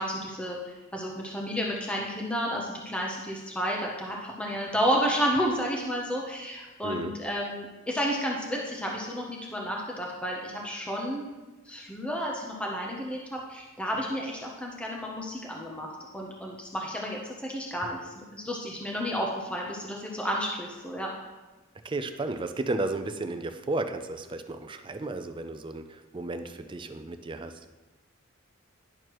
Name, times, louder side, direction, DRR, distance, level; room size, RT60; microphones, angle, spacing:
voice 1, 0.0-11.2 11.7-15.9 16.1-21.1, equal, 5° left, -2 dB, 0.7 m, -31 dB
voice 2, 6.8-7.1 21.8-27.6, right 2 dB, 25° right, 8 dB, 0.4 m, -33 dB
10.5 x 6.3 x 3.1 m, 1.2 s
head